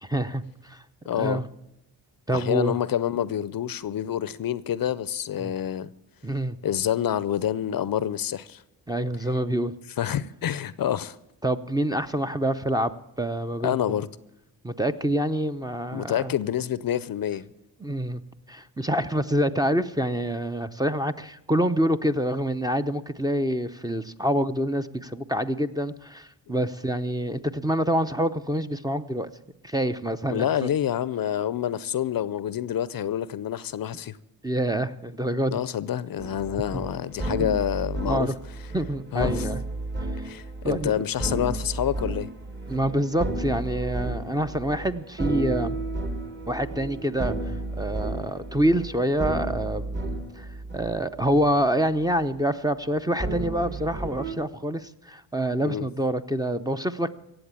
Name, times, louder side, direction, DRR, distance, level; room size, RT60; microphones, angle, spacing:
voice 1, 0.0-0.8 1.1-1.5 2.3-2.8 5.4-5.5 6.2-6.6 8.9-9.7 11.4-13.8 14.6-16.3 17.8-18.2 18.5-29.3 29.6-30.7 34.4-35.6 36.7-36.9 38.1-38.3 38.7-39.6 40.6-40.9 42.7-45.8 46.5-47.3 47.8-50.5 50.7-57.1, right 1 dB, 10° right, 0.7 m, -26 dB
voice 2, 1.1-1.4 2.3-5.9 6.6-8.6 10.0-11.2 13.6-14.1 15.9-17.5 30.3-34.2 35.5-38.3 39.1-39.5 40.2-42.3 55.6-55.9, left 10 dB, 55° left, 0.6 m, -27 dB
sound 1, 36.2-51.7 52.0-52.4 53.2-54.3, right 2 dB, 25° right, 1.7 m, -32 dB
16.5 x 7.8 x 8.9 m
cardioid pair, 65°, 42 cm